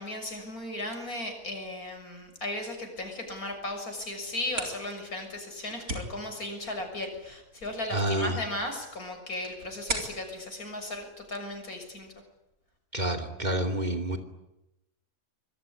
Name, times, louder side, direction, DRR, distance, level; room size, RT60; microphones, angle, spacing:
voice 1, 0.0-12.1, left 1 dB, 85° left, 4 dB, 7.1 m, -36 dB
sound 1, 4.2-11.8, right 2 dB, 80° right, 4.7 m, -41 dB
voice 2, 7.9-8.4 12.9-14.2, right 1 dB, 30° right, 9 dB, 2.8 m, -28 dB
25.5 x 22.5 x 9.9 m, 0.91 s
omnidirectional pair, 1.5 m